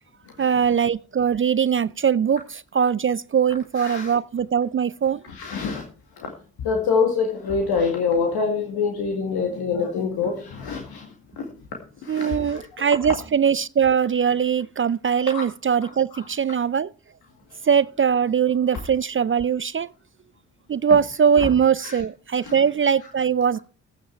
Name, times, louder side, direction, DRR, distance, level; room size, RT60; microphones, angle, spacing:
voice 1, 0.4-5.2 12.1-16.9 17.6-19.9 20.7-23.6, right 7 dB, 35° right, 0.5 m, -21 dB
voice 2, 3.8-4.1 5.2-5.8 6.2-6.3 6.6-11.1 11.4-11.5 12.0-12.7 15.3-15.4 15.8-16.2 21.8-22.0 22.4-22.6, left 5 dB, 75° left, 2.1 m, -26 dB
14.5 x 9.2 x 4.5 m
hypercardioid pair, 40°, 38 cm